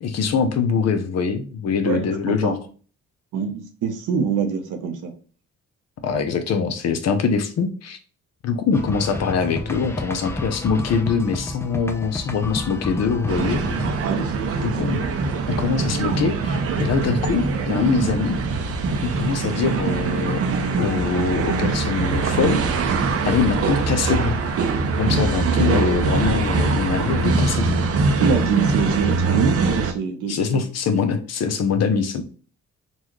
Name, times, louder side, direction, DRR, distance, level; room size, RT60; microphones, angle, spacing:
voice 1, 0.0-2.5 6.0-8.0 8.4-13.6 14.6-15.0 15.6-18.4 19.0-20.4 20.8-22.6 23.2-24.4 25.0-27.8 30.3-32.2, left 5 dB, 60° left, 7 dB, 0.7 m, -23 dB
voice 2, 1.8-2.6 3.3-5.1 14.0-14.3 28.2-30.6, right 6 dB, 85° right, 5 dB, 0.8 m, -25 dB
sound 1, 8.7-13.9, left 2 dB, 10° left, 0.4 m, -31 dB
sound 2, 13.3-29.9, right 4 dB, 50° right, 0.6 m, -22 dB
4.0 x 2.4 x 3.0 m, 0.39 s
cardioid pair, 90°, 30 cm